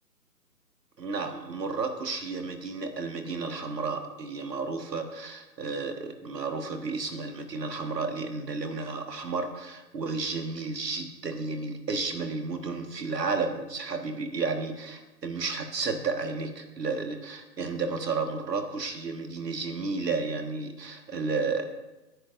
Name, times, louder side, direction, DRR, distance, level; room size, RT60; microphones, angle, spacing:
voice 1, 1.0-21.7, right 4 dB, 75° right, 5 dB, 1.7 m, -32 dB
20.0 x 10.0 x 2.6 m, 1.1 s
figure-of-eight pair, 150°, 49 cm